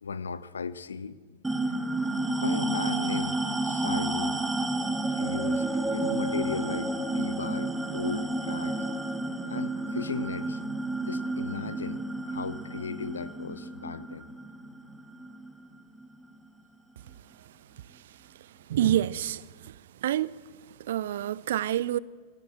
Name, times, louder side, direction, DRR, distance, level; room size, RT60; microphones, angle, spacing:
voice 1, 0.0-1.2 2.4-3.4 3.6-4.4 5.1-5.6 5.9-8.9 9.5-10.6 11.1-14.3, left 5 dB, 70° left, 1.0 m, -36 dB
sound 1, 1.4-16.3, right 2 dB, 10° right, 1.7 m, -31 dB
voice 2, 18.7-19.7 20.0-20.4 20.9-22.0, right 12 dB, 60° right, 0.6 m, -27 dB
22.5 x 17.5 x 8.1 m
figure-of-eight pair, 90°, 0 cm